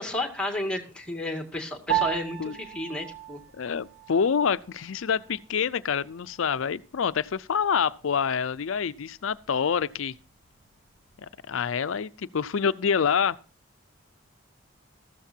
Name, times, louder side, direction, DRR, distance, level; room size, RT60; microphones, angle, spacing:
voice 1, 0.0-3.4, left 1 dB, 5° left, 2.1 m, -32 dB
Piano, 1.9-11.5, right 11 dB, 70° right, 2.1 m, -37 dB
voice 2, 3.5-10.1 11.5-13.4, left 6 dB, 85° left, 0.5 m, -26 dB
15.0 x 13.0 x 2.7 m
head